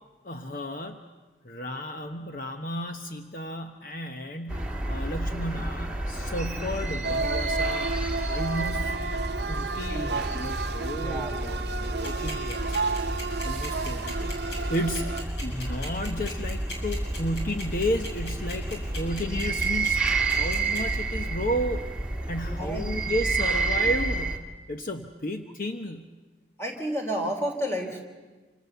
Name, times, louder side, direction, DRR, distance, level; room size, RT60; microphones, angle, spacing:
voice 1, 0.2-1.1 1.4-8.0 8.3-9.1 9.5-11.3 11.9-12.8 13.4-21.8 22.3-26.1, equal, 50° left, 5 dB, 1.0 m, -33 dB
sound 1, 4.5-24.4, right 2 dB, 5° right, 1.7 m, -30 dB
sound 2, 7.0-15.2, right 4 dB, 70° right, 0.7 m, -32 dB
voice 2, 9.9-10.5 11.0-11.6 22.4-22.8 26.6-28.0, equal, 15° left, 3 dB, 3.3 m, -32 dB
sound 3, 11.8-20.8, left 1 dB, 70° left, 7.1 m, -38 dB
27.5 x 26.0 x 7.0 m, 1.3 s
head